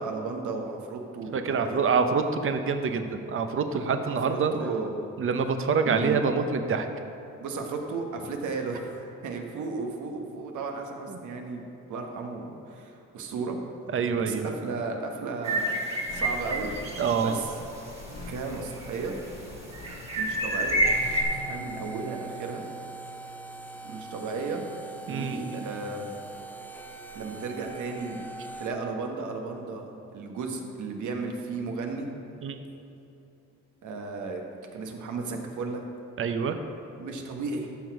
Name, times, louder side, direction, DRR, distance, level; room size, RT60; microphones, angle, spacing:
voice 1, 0.0-1.9 4.1-5.0 5.8-6.2 7.4-13.6 14.2-16.7 17.2-17.6 18.3-19.2 20.2-20.8 21.3-22.6 23.8-24.7 25.1-26.1 27.1-28.2 28.6-29.9 30.1-32.1 33.8-34.4 34.7-35.8 37.0-37.7, right 4 dB, 75° right, 2 dB, 1.3 m, -34 dB
voice 2, 1.3-4.5 5.2-6.9 13.9-14.5 17.0-17.4 25.1-25.6 32.4-32.6 36.2-36.5, right 5 dB, 45° right, 7 dB, 0.8 m, -26 dB
sound 1, 15.4-17.3 17.7-17.8 18.3-19.1 19.7-21.2, right 1 dB, 20° right, 2.0 m, -28 dB
sound 2, 16.1-21.4, left 2 dB, 60° left, 1.5 m, -43 dB
sound 3, 20.8-28.7, right 3 dB, 5° left, 0.6 m, -42 dB
13.0 x 6.1 x 4.8 m, 2.8 s
cardioid pair, 90°, 30 cm